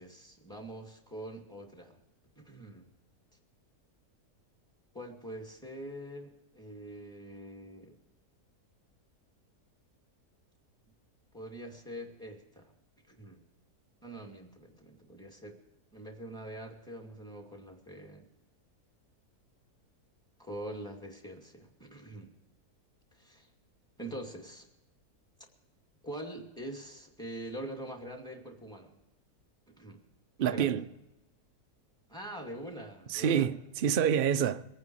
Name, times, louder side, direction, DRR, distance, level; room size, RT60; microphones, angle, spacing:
voice 1, 0.0-2.0 2.4-2.9 4.9-8.0 11.3-12.7 13.1-13.4 14.0-15.6 15.9-18.2 20.4-22.3 23.1-23.5 24.0-24.7 26.0-28.9 29.8-30.0 30.4-30.8 32.1-33.5, right 1 dB, 5° left, 2.3 m, -44 dB
voice 2, 30.4-30.9 33.1-34.6, right 8 dB, 60° right, 0.5 m, -27 dB
23.5 x 9.5 x 4.7 m
omnidirectional pair, 1.7 m